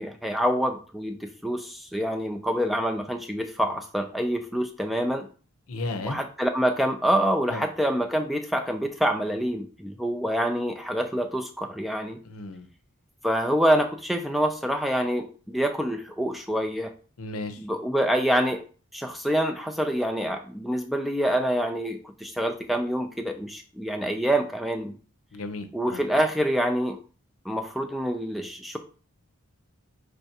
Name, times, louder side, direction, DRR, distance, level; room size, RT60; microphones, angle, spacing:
voice 1, 0.0-5.3 6.0-12.2 13.2-16.9 17.6-18.6 18.9-24.9 25.7-27.0 27.5-28.8, equal, ahead, 4 dB, 0.3 m, -26 dB
voice 2, 5.7-6.2 7.5-7.6 12.2-12.7 17.2-17.6 25.3-26.0, left 2 dB, 80° left, 8 dB, 0.7 m, -34 dB
5.7 x 3.3 x 2.8 m, 0.38 s
head